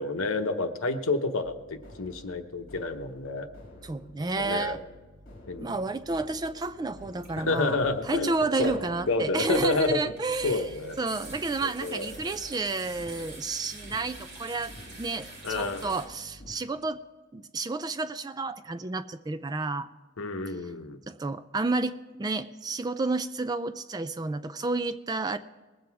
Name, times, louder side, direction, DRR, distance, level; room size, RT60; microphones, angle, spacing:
voice 1, 0.0-3.5 4.4-4.8 5.5-5.7 7.4-8.7 9.1-11.0 11.6-12.1 15.4-16.0 20.2-21.0, left 3 dB, 70° left, 7 dB, 1.0 m, -29 dB
sound 1, 1.4-16.5, left 1 dB, 40° left, 2.8 m, -50 dB
voice 2, 3.8-4.8 5.6-10.6 11.0-17.0 17.3-19.9 21.1-25.4, right 3 dB, 20° right, 11 dB, 0.3 m, -31 dB
sound 2, 7.2-16.1, right 2 dB, 50° right, 2.8 m, -44 dB
20.0 x 7.7 x 4.7 m, 1.3 s
head